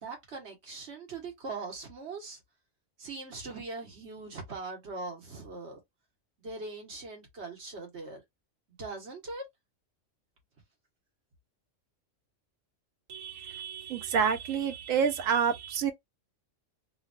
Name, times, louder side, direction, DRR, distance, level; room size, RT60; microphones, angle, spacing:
voice 1, 0.0-2.4 3.0-5.8 6.4-8.2 8.8-9.4, right 3 dB, 60° right, 1.5 m, -41 dB
voice 2, 13.1-15.9, right 7 dB, 90° right, 1.1 m, -29 dB
3.2 x 2.3 x 2.4 m
omnidirectional pair, 1.3 m